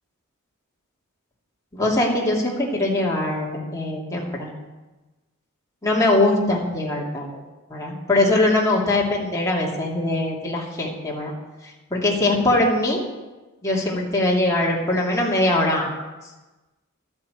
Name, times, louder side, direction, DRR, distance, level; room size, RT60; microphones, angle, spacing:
voice 1, 1.7-4.5 5.8-7.4 7.7-11.3 11.9-13.0 13.6-15.9, left 2 dB, 15° left, -4 dB, 2.6 m, -22 dB
12.5 x 8.7 x 8.1 m, 1.1 s
head